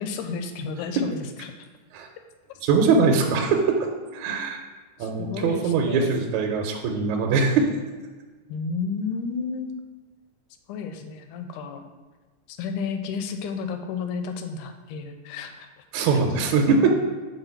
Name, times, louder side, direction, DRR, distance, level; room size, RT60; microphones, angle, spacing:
voice 1, 0.0-1.7 3.3-3.7 4.1-4.4 5.0-6.2 8.5-9.7 10.7-11.8 12.5-15.8, left 5 dB, 85° left, 6 dB, 2.0 m, -32 dB
voice 2, 2.6-3.8 4.1-4.6 5.0-7.7 15.9-16.9, right 4 dB, 80° right, 2 dB, 1.8 m, -22 dB
4.6 x 3.9 x 5.6 m, 1.3 s
omnidirectional pair, 3.5 m